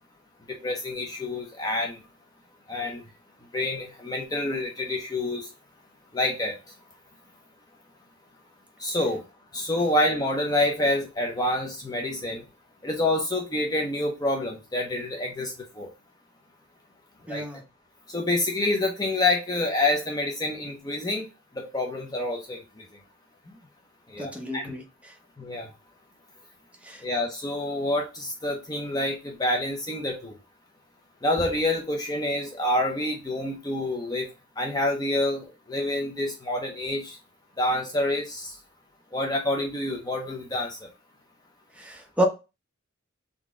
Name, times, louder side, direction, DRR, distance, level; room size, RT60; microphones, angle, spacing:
voice 1, 0.6-2.0 2.7-3.0 3.5-5.5 6.1-6.6 8.8-9.2 9.5-12.4 12.8-15.9 17.3-17.4 18.1-21.3 21.6-22.6 24.1-24.7 25.4-25.7 27.0-30.3 31.2-34.3 34.6-37.2 37.6-38.5 39.1-40.8, left 1 dB, 20° left, 1 dB, 0.6 m, -27 dB
voice 2, 17.3-17.6 24.2-25.1 26.8-27.0 41.8-42.2, equal, 5° right, 2 dB, 0.9 m, -30 dB
3.9 x 3.5 x 3.6 m, 0.28 s
head